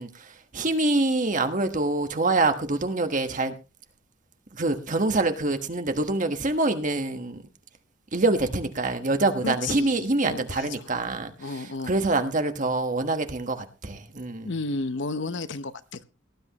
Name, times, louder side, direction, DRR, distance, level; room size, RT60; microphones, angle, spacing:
voice 1, 0.0-3.5 4.5-7.4 8.1-11.6 11.8-14.5, right 2 dB, 40° right, 1.3 m, -25 dB
voice 2, 9.4-10.9 11.4-11.9 14.4-16.0, left 3 dB, 60° left, 0.8 m, -32 dB
18.5 x 11.0 x 3.0 m
head